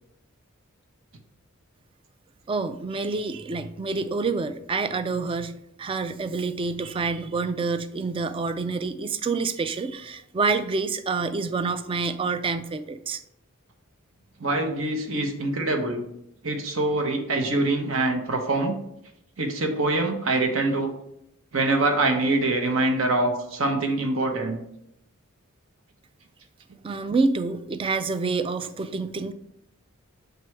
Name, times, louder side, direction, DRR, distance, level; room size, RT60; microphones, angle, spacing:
voice 1, 2.5-13.2 26.8-29.3, right 4 dB, 25° right, 11 dB, 0.3 m, -27 dB
voice 2, 14.4-16.0 16.4-18.7 19.4-20.9 21.5-24.6, right 2 dB, 75° right, 4 dB, 1.0 m, -24 dB
6.7 x 4.6 x 3.2 m, 0.79 s
head